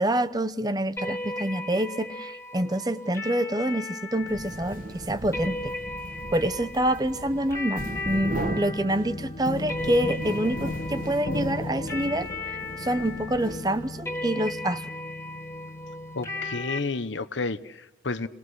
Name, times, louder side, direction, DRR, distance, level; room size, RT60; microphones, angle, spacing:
voice 1, 0.0-5.7 6.3-14.9, right 1 dB, 20° right, 13 dB, 0.8 m, -27 dB
sound 1, 1.0-16.8, left 2 dB, 15° left, 2.0 m, -37 dB
sound 2, 4.2-14.1, right 1 dB, 45° right, 1.6 m, -38 dB
sound 3, 8.1-16.6, left 2 dB, 65° left, 1.2 m, -37 dB
voice 2, 16.1-18.3, left 3 dB, 85° left, 13 dB, 1.0 m, -31 dB
29.5 x 20.5 x 6.3 m, 0.82 s
head